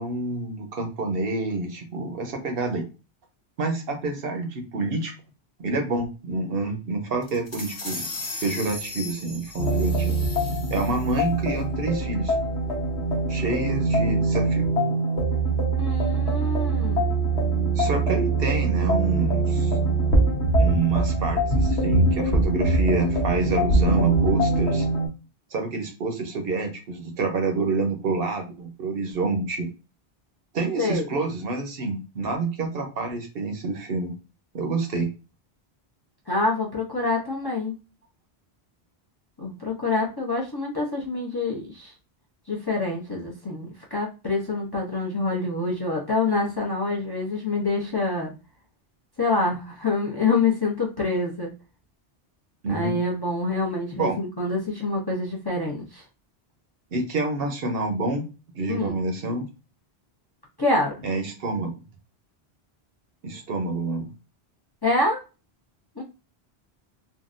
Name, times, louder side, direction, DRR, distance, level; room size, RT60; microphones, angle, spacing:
voice 1, 0.0-2.9 3.6-5.1 5.6-8.1 8.4-10.2 10.7-12.3 13.3-14.7 17.8-19.7 20.5-24.8 25.5-29.7 30.5-34.1 34.5-35.1 52.6-52.9 54.0-54.2 56.9-58.3 58.5-59.4 61.0-61.7 63.2-64.1, right 3 dB, 65° right, 4 dB, 0.9 m, -28 dB
sound 1, 7.2-11.2, left 2 dB, 65° left, 1.1 m, -37 dB
sound 2, 9.6-25.1, right 2 dB, 85° left, 1.2 m, -23 dB
voice 2, 15.8-17.2 30.8-31.1 36.3-37.8 39.4-41.9 42.5-48.3 49.2-51.5 52.7-56.0 58.7-58.9 60.6-61.0 64.8-65.2 66.0-66.1, left 3 dB, 25° left, -3 dB, 0.6 m, -26 dB
3.7 x 2.2 x 2.4 m, 0.31 s
omnidirectional pair, 1.1 m